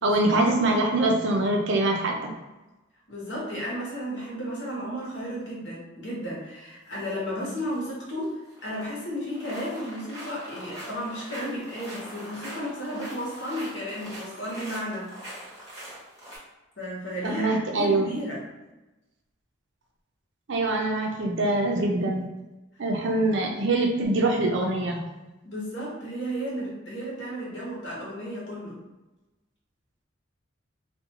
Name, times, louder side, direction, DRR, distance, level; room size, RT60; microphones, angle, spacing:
voice 1, 0.0-2.3 17.2-18.1 20.5-22.2 22.8-25.0, right 2 dB, 65° right, 1 dB, 0.5 m, -24 dB
voice 2, 3.1-15.4 16.8-18.4 25.4-28.8, equal, 60° left, -6 dB, 1.0 m, -33 dB
sound 1, 6.9-7.1 7.5-7.8 8.1-8.9 9.2-16.4, equal, 15° right, 0.8 m, -42 dB
2.4 x 2.2 x 2.8 m, 1.1 s
head